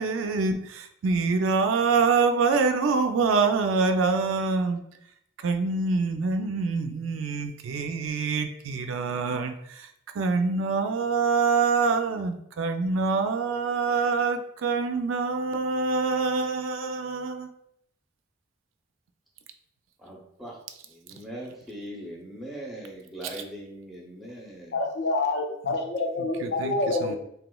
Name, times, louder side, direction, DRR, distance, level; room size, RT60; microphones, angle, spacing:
voice 1, 0.0-4.8 5.4-9.9 10.2-17.5, right 4 dB, 80° right, 6 dB, 0.4 m, -25 dB
voice 2, 20.0-20.6 20.8-24.8, right 1 dB, ahead, -3 dB, 0.6 m, -40 dB
voice 3, 24.7-27.2, left 2 dB, 55° left, 4 dB, 0.4 m, -27 dB
3.4 x 3.0 x 2.2 m, 0.73 s
head